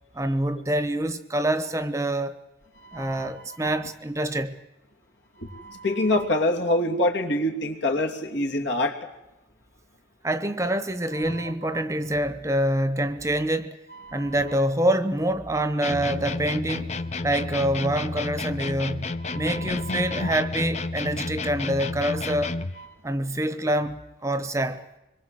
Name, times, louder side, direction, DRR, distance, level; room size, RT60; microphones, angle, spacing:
voice 1, 0.1-2.3 2.9-4.5 10.2-13.8 14.1-17.0 17.2-22.5 23.0-24.8, right 1 dB, 15° right, 1.0 m, -26 dB
voice 2, 2.8-3.3 3.6-3.8 5.4-9.0 11.2-11.3 11.7-11.8 14.1-14.5 19.2-20.3 22.8-22.9, left 1 dB, 70° left, 2.9 m, -27 dB
sound 1, 15.8-22.8, left 3 dB, 35° left, 0.8 m, -31 dB
25.0 x 22.5 x 7.7 m
head